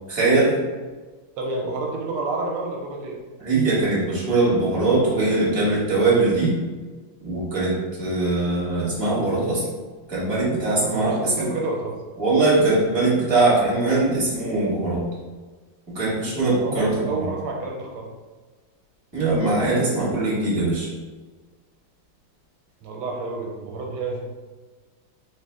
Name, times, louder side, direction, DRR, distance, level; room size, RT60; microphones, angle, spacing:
voice 1, 0.1-0.6 3.4-6.6 7.2-9.6 10.1-11.3 12.2-15.0 15.9-17.3 19.1-20.9, right 2 dB, 15° right, -7 dB, 1.2 m, -21 dB
voice 2, 1.4-3.2 10.7-12.0 16.6-18.1 22.8-24.2, right 2 dB, 90° right, 0 dB, 1.6 m, -29 dB
3.8 x 3.2 x 3.5 m, 1.3 s
omnidirectional pair, 2.4 m